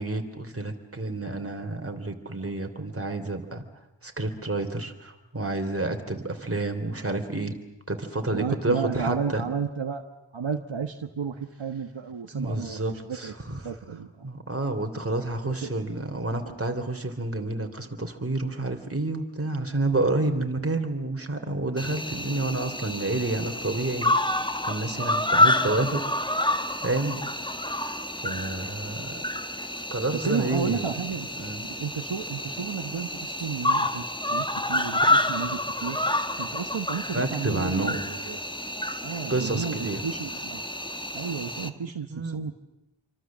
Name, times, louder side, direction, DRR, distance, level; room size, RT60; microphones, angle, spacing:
voice 1, 0.0-3.6 4.0-7.5 7.9-9.4 12.3-13.7 14.2-24.1 24.7-26.0 26.8-27.2 27.6-28.0 28.2-29.2 29.9-31.0 31.4-31.6 37.1-38.0 39.3-40.0 42.1-42.4, right 2 dB, 30° right, 5 dB, 3.3 m, -29 dB
voice 2, 8.3-10.1 10.3-13.3 13.6-14.3 15.4-15.8 30.1-31.3 31.8-34.0 34.3-36.0 36.4-38.4 39.0-40.6 41.1-42.5, right 6 dB, 70° right, 6 dB, 1.4 m, -32 dB
Cricket, 21.8-41.7, left 1 dB, 10° left, 1.5 m, -28 dB
27.5 x 25.0 x 7.5 m, 0.93 s
wide cardioid pair, 70°, 47 cm